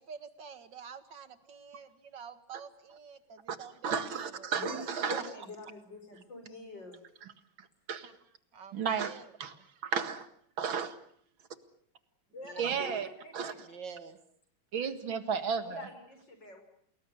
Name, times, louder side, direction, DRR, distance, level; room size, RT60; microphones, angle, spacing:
voice 1, 0.0-4.5 4.8-4.9 8.5-9.3 9.5-9.7 12.4-12.8 13.6-14.2, right 6 dB, 65° right, 10 dB, 2.5 m, -48 dB
voice 2, 3.8-5.2 7.2-7.3 7.9-8.1 8.7-9.5 9.8-10.3 10.6-11.0 12.6-13.1 13.3-13.7 14.7-15.9, right 6 dB, 80° right, 10 dB, 2.6 m, -33 dB
voice 3, 4.5-7.0 12.3-13.8 15.6-16.6, left 2 dB, 60° left, 6 dB, 6.5 m, -45 dB
29.0 x 20.5 x 7.9 m, 0.65 s
omnidirectional pair, 2.2 m